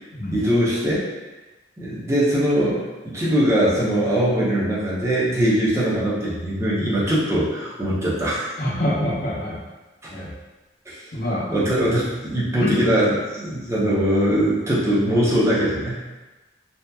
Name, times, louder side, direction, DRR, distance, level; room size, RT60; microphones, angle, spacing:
voice 1, 0.3-1.0 1.8-2.8 3.1-8.5 10.9-11.0 11.5-16.0, equal, 15° right, -8 dB, 0.7 m, -21 dB
voice 2, 8.6-9.6 10.1-10.3 11.1-11.4 12.6-12.7, left 1 dB, 55° left, -6 dB, 0.7 m, -25 dB
2.8 x 2.4 x 2.2 m, 1.1 s
head